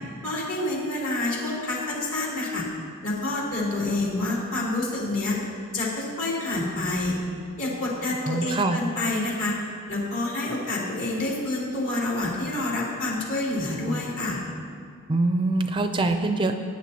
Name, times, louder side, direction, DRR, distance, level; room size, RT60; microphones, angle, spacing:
voice 1, 0.2-2.6 3.0-5.4 5.7-7.2 7.6-9.5 9.9-14.4, left 2 dB, 65° left, -5 dB, 3.3 m, -28 dB
voice 2, 8.3-8.8 15.1-16.5, right 2 dB, 25° right, 7 dB, 0.4 m, -24 dB
18.5 x 9.9 x 2.9 m, 2.2 s
head